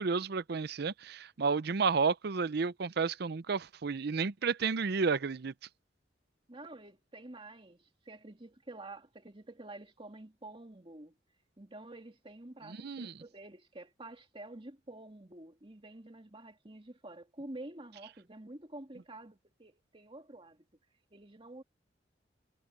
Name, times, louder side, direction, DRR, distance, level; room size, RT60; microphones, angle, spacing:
voice 1, 0.0-5.5 12.8-13.1, right 5 dB, 60° right, 0.6 m, -31 dB
voice 2, 6.5-11.1 11.6-20.6 21.1-21.6, right 2 dB, 30° right, 2.3 m, -49 dB
head